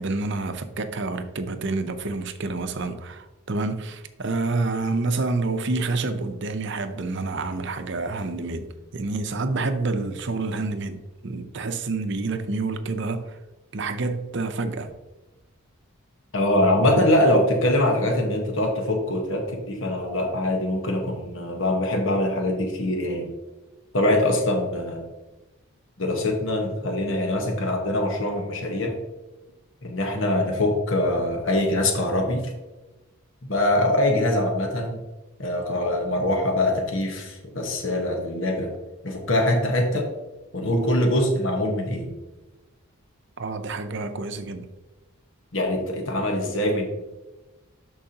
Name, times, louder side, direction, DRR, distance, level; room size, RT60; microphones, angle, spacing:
voice 1, 0.0-13.4 13.7-14.9 43.4-44.7, right 3 dB, 55° right, 0.7 m, -28 dB
voice 2, 16.3-23.3 23.9-25.1 26.0-28.9 29.8-32.5 33.5-35.0 35.4-38.7 39.0-40.1 40.5-42.1 45.5-46.9, left 1 dB, 60° left, 1.3 m, -23 dB
12.0 x 4.7 x 2.9 m
head